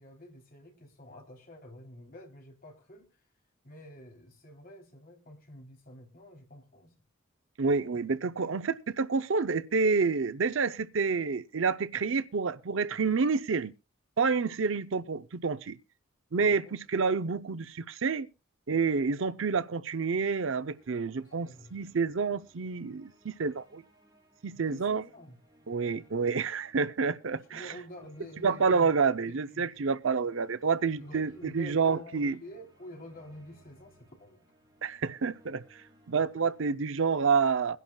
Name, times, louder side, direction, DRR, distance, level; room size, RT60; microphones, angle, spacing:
voice 1, 0.0-3.1 3.6-6.9 16.5-16.8 21.2-21.7 24.5-25.4 27.3-28.9 29.3-29.8 31.0-34.5, left 1 dB, 45° left, 3.3 m, -49 dB
voice 2, 7.6-13.7 14.2-15.8 16.3-18.3 18.7-23.8 24.4-25.0 25.7-27.7 28.4-32.4 34.8-35.8 36.1-37.8, right 5 dB, 70° right, 0.6 m, -28 dB
sound 1, 20.2-36.8, equal, 20° right, 5.1 m, -63 dB
22.5 x 11.0 x 2.3 m
head